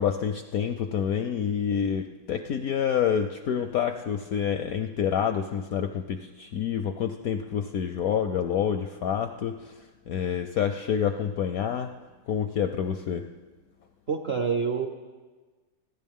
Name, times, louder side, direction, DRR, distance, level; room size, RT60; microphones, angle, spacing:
voice 1, 0.0-9.7 10.1-12.0 12.3-13.3, left 8 dB, 70° left, 7 dB, 0.8 m, -28 dB
voice 2, 14.1-14.9, right 6 dB, 55° right, 5 dB, 0.7 m, -26 dB
28.0 x 10.5 x 3.6 m, 1.3 s
omnidirectional pair, 2.1 m